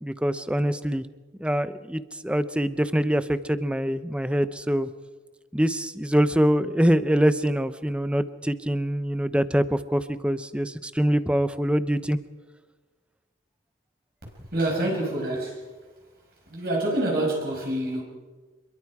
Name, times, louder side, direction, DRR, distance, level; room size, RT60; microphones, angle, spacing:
voice 1, 0.0-1.1 1.4-4.9 5.5-12.2, equal, 5° right, 12 dB, 0.7 m, -24 dB
voice 2, 14.2-15.6 16.5-18.0, right 1 dB, 50° right, -2 dB, 5.8 m, -27 dB
27.0 x 22.5 x 4.9 m, 1.3 s
head